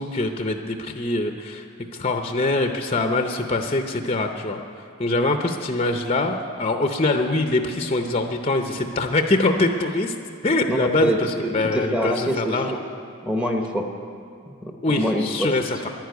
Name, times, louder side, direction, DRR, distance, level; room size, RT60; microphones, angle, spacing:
voice 1, 0.0-1.7 1.9-4.6 5.0-10.1 10.4-12.8 14.8-15.9, left 2 dB, 25° left, 5 dB, 0.6 m, -23 dB
voice 2, 10.7-12.8 13.2-13.9 14.5-15.5, equal, 5° right, 3 dB, 0.9 m, -25 dB
11.0 x 9.6 x 9.3 m, 2.4 s
head